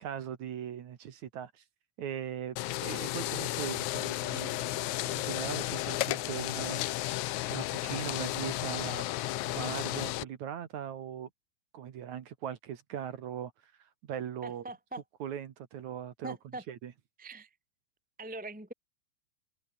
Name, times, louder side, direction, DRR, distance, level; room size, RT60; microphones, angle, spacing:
voice 1, 0.0-1.6 2.0-4.8 5.1-6.8 7.5-9.0 9.5-11.3 11.7-13.5 13.8-14.7 15.2-16.4 16.7-16.9, right 9 dB, 60° right, 2.7 m, -40 dB
sound 1, 2.6-10.2, left 16 dB, 75° left, 1.8 m, -33 dB
voice 2, 14.4-15.0 16.2-16.6 17.2-17.5 18.2-18.7, right 2 dB, 5° right, 1.5 m, -42 dB
omnidirectional pair, 4.0 m